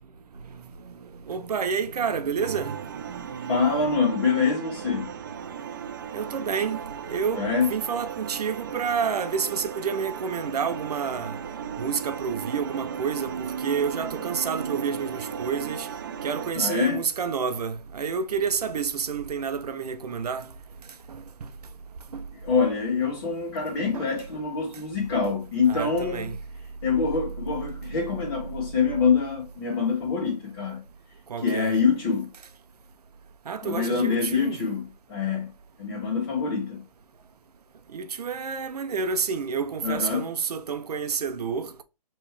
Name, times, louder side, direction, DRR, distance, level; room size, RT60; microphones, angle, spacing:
voice 1, 0.8-3.5 6.1-11.4 11.8-15.9 16.2-20.5 21.1-21.2 22.1-22.2 23.9-24.1 25.7-26.4 31.3-31.7 33.5-34.6 37.9-41.8, right 6 dB, 70° right, 0.6 m, -29 dB
sound 1, 2.4-16.5, right 7 dB, 30° right, 0.4 m, -36 dB
voice 2, 3.5-5.1 7.3-7.7 16.5-17.0 22.3-26.3 26.8-30.8 31.4-32.3 33.6-35.5 35.8-36.8 39.8-40.2, left 5 dB, 40° left, 1.3 m, -25 dB
5.1 x 3.2 x 3.2 m
hypercardioid pair, 160°, 21 cm